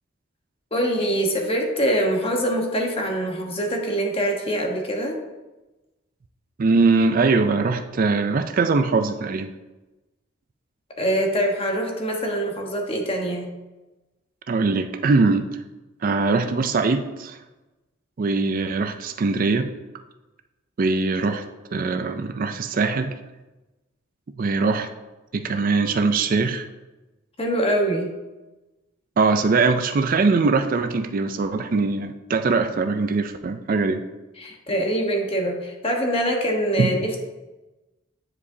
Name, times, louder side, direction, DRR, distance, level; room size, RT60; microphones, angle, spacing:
voice 1, 0.7-5.2 11.0-13.5 27.4-28.1 34.4-37.2, right 1 dB, 30° left, 1 dB, 1.1 m, -24 dB
voice 2, 6.6-9.5 14.5-15.5 16.0-17.4 18.2-19.7 20.8-21.4 21.7-23.1 24.4-24.9 25.3-26.7 29.2-34.0 36.8-36.9, right 4 dB, 40° right, 8 dB, 0.4 m, -21 dB
9.6 x 4.9 x 2.7 m, 1.1 s
head